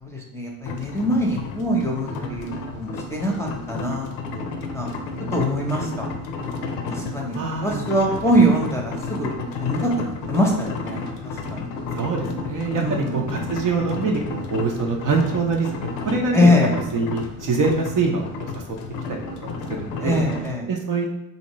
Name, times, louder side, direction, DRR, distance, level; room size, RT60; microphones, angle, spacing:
voice 1, 0.0-4.1 4.3-4.5 4.7-4.9 5.3-6.1 6.9-9.3 9.6-11.0 11.5-11.7 12.7-13.2 16.3-16.7 20.0-20.7, equal, 5° left, -1 dB, 0.8 m, -23 dB
sound 1, 0.6-20.5, left 3 dB, 80° left, 0.6 m, -32 dB
voice 2, 7.3-7.9 11.9-16.5 16.9-18.6 19.4-20.2 20.7-21.1, right 4 dB, 45° right, 1 dB, 0.7 m, -24 dB
3.5 x 2.6 x 3.1 m, 0.92 s
supercardioid pair, 75°, 48 cm